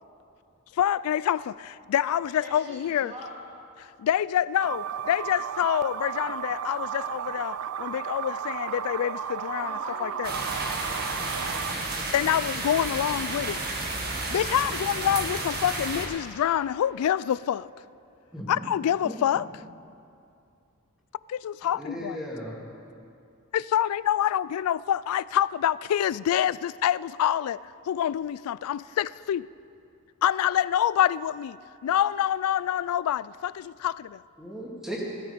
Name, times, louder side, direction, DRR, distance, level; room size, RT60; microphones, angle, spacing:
voice 1, 0.8-3.1 3.8-10.3 12.1-13.6 14.3-17.7 18.5-19.5 21.3-22.2 23.5-27.6 27.9-29.5 30.2-34.2, left 10 dB, 85° left, 0.3 m, -26 dB
voice 2, 2.4-3.3 9.5-12.1, right 1 dB, 30° right, 3.1 m, -44 dB
sound 1, 4.6-11.7, right 8 dB, 90° right, 0.4 m, -34 dB
sound 2, 10.2-16.1, right 2 dB, 50° right, 1.9 m, -32 dB
voice 3, 21.8-22.6 34.4-35.0, equal, ahead, 2.4 m, -36 dB
16.5 x 13.0 x 5.1 m
head